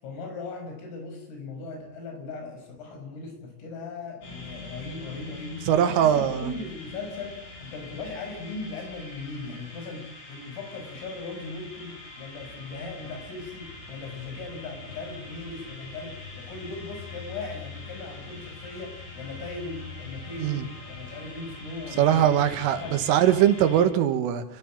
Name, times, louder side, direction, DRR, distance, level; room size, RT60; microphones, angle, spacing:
voice 1, 0.0-22.5 22.8-23.0, left 3 dB, 85° left, 4 dB, 8.2 m, -38 dB
sound 1, 4.2-23.8, left 3 dB, 65° left, 10.0 m, -43 dB
voice 2, 5.7-6.5 20.4-20.7 21.9-24.4, right 10 dB, 85° right, 9 dB, 4.2 m, -21 dB
29.5 x 15.0 x 8.9 m, 0.86 s
omnidirectional pair, 5.7 m